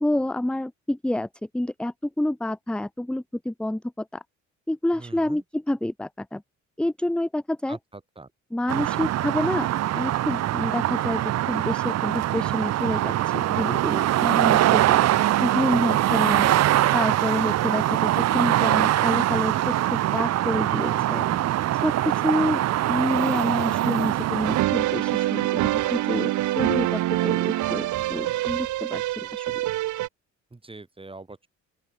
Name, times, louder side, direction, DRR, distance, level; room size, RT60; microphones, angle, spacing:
voice 1, 0.0-1.3 1.5-4.2 4.7-6.4 6.8-7.8 8.5-9.7 9.9-15.0 15.4-16.5 16.9-21.3 21.8-29.6, left 1 dB, 5° left, 0.6 m, -28 dB
voice 2, 5.0-5.4 7.7-7.8 8.2-8.3 30.5-31.5, right 3 dB, 20° right, 3.2 m, -42 dB
sound 1, 8.7-24.6, right 13 dB, 60° right, 0.6 m, -23 dB
sound 2, 24.4-30.1, right 16 dB, 80° right, 0.9 m, -25 dB
open air
cardioid pair, 90°, 30 cm